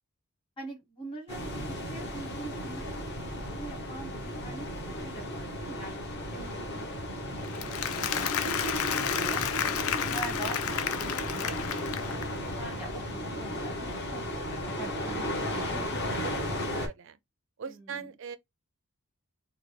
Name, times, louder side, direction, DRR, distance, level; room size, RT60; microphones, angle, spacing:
voice 1, 0.6-3.1 3.4-6.0 6.3-7.0 7.3-9.4 10.1-12.3 12.6-16.4 17.9-18.0, right 2 dB, 25° left, 1.1 m, -44 dB
sound 1, 1.3-16.9, equal, 50° left, 1.0 m, -35 dB
Applause, 7.4-12.5, left 9 dB, 75° left, 0.4 m, -32 dB
voice 2, 9.8-10.2 16.2-16.3 16.7-17.2 17.6-18.4, right 6 dB, 55° right, 0.4 m, -41 dB
3.4 x 2.2 x 3.3 m
head